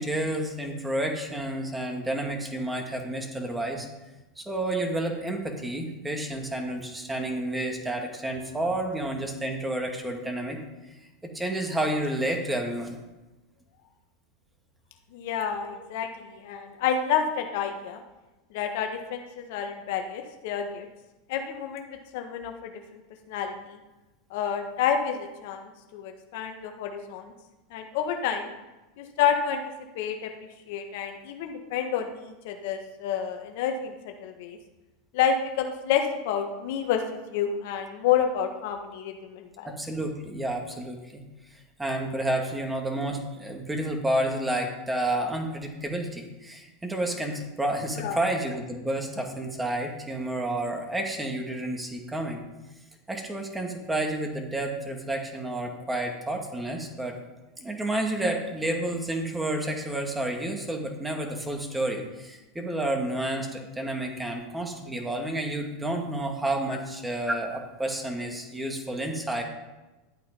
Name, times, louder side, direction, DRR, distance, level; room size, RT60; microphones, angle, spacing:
voice 1, 0.0-3.9 4.4-10.6 11.3-13.0 39.6-41.2 41.5-52.4 53.1-57.2 57.6-69.4, right 1 dB, 10° right, 2 dB, 2.4 m, -30 dB
voice 2, 15.1-18.0 18.5-20.9 21.3-22.7 23.3-23.8 24.3-27.3 27.7-28.5 29.0-29.6 29.9-30.3 30.7-33.9 34.2-34.6 35.1-37.0 37.3-39.7 48.0-48.2, left 8 dB, 65° left, 5 dB, 1.4 m, -29 dB
12.0 x 8.5 x 5.4 m, 1.1 s
hypercardioid pair, 105°, 0 cm